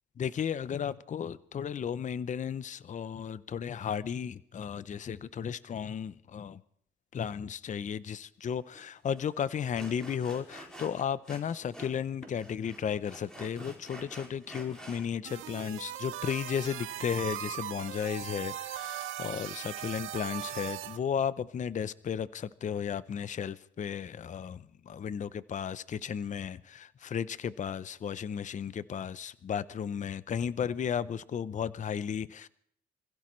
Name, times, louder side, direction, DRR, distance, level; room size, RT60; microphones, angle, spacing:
voice 1, 0.2-6.6 7.1-32.5, left 8 dB, 40° left, 0.6 m, -34 dB
Sawing, 8.7-8.8 9.1-9.3 9.7-12.0 12.2-15.1, right 1 dB, 5° left, 4.6 m, -48 dB
sound 1, 15.3-21.0, right 12 dB, 85° right, 0.8 m, -39 dB
26.0 x 16.0 x 3.1 m
cardioid pair, 90°, 20 cm